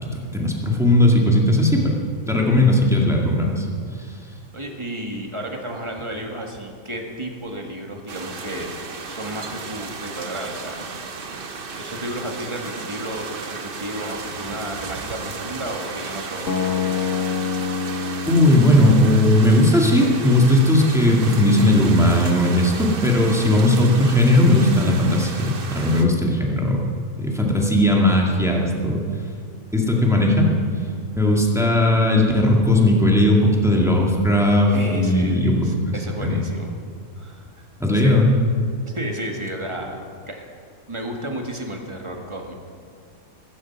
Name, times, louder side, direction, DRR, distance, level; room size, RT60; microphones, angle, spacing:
voice 1, 0.3-2.0 2.3-3.7 18.2-26.9 27.2-29.0 29.7-30.5 31.2-35.6 35.9-36.0 36.2-36.4 37.8-38.3, left 1 dB, ahead, -1 dB, 1.9 m, -17 dB
voice 2, 4.5-8.8 9.0-10.8 11.7-17.2 34.7-36.7 37.2-37.7 37.9-38.1 38.9-40.4 40.9-42.5, right 1 dB, 20° right, 1 dB, 1.6 m, -32 dB
sound 1, 8.1-26.1, right 4 dB, 40° right, 0.9 m, -34 dB
sound 2, 16.5-22.5, left 6 dB, 55° left, 1.6 m, -29 dB
15.0 x 14.5 x 5.9 m, 2.3 s
omnidirectional pair, 1.8 m